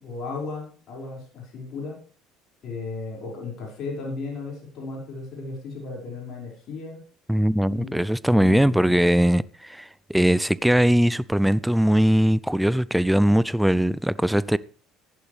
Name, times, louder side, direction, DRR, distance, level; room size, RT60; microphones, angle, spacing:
voice 1, 0.0-1.9 2.6-7.0 7.7-8.0, left 4 dB, 55° left, 5.2 m, -35 dB
voice 2, 7.3-14.6, equal, 5° right, 0.5 m, -20 dB
15.0 x 11.5 x 3.3 m
hypercardioid pair, 65°, 0 cm